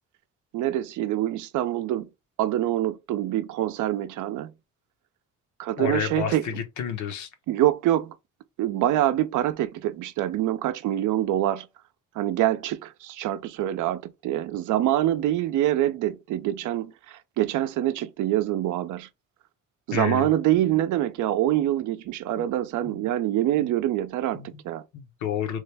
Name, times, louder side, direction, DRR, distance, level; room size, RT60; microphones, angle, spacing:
voice 1, 0.5-2.1 2.4-4.5 5.6-6.4 7.5-8.1 8.6-11.7 12.2-16.9 17.4-19.1 19.9-24.8, right 13 dB, 80° right, 0.5 m, -25 dB
voice 2, 5.8-7.3 19.9-20.3 22.4-22.5 22.8-23.1 23.6-23.7 24.3-24.6 24.9-25.6, left 8 dB, 70° left, 0.8 m, -30 dB
3.1 x 2.2 x 3.3 m
cardioid pair, 90°, 30 cm